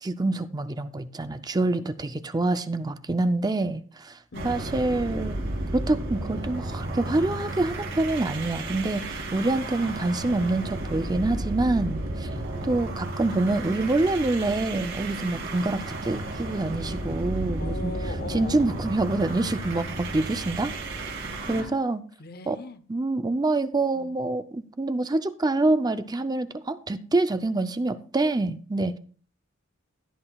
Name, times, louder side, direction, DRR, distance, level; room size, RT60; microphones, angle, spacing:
voice 1, 0.0-4.2 4.4-5.4 5.7-12.3 12.7-17.9 18.3-20.7 21.5-22.0 22.5-22.6 22.9-29.0, right 2 dB, 20° right, 0.5 m, -26 dB
voice 2, 4.3-4.7 12.5-13.2 17.6-18.8 21.4-22.8 23.9-24.2, left 2 dB, 50° left, 0.8 m, -41 dB
sound 1, 4.3-21.7, right 1 dB, 60° right, 2.7 m, -33 dB
16.5 x 9.8 x 2.3 m
head